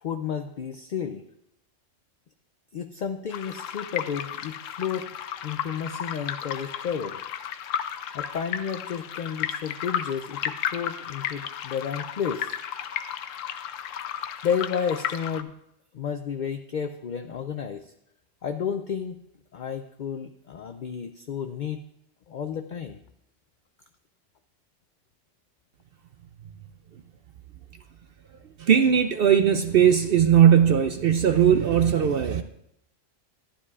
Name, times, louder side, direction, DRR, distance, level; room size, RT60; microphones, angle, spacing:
voice 1, 0.0-1.2 2.7-5.1 5.4-7.2 8.1-12.5 14.4-15.5 15.9-17.9 18.4-19.2 19.5-21.8 22.3-23.0, left 7 dB, 65° left, 8 dB, 0.4 m, -31 dB
sound 1, 3.3-15.4, left 9 dB, 80° left, 1.0 m, -34 dB
voice 2, 28.6-32.4, right 9 dB, 60° right, 8 dB, 0.6 m, -19 dB
12.5 x 11.5 x 2.4 m, 0.78 s
omnidirectional pair, 1.3 m